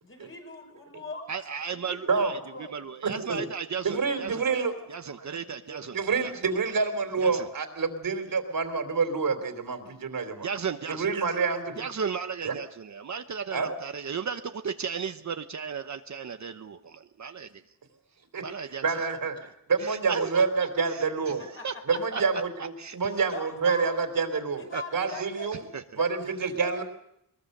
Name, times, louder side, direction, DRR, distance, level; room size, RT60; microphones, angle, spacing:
voice 1, 0.0-1.3 1.7-2.9 21.5-22.2 23.3-24.0 24.5-25.5 26.0-26.3 26.6-26.8, left 2 dB, 40° left, 2 dB, 6.0 m, -41 dB
voice 2, 1.3-4.4 4.9-6.3 7.2-7.5 10.4-11.1 11.8-17.5 18.4-18.8 19.8-23.0 24.7-24.8 25.1-26.0, right 6 dB, 55° right, 8 dB, 1.0 m, -35 dB
voice 3, 3.0-3.4 3.8-4.7 5.0-5.3 5.6-10.5 10.9-11.8 12.4-12.5 13.5-13.7 18.3-18.4 18.8-21.4 21.9-24.6 24.9-25.6 25.9-26.8, right 5 dB, 75° right, 7 dB, 3.4 m, -28 dB
21.5 x 21.5 x 6.7 m, 0.78 s
wide cardioid pair, 125°, 34 cm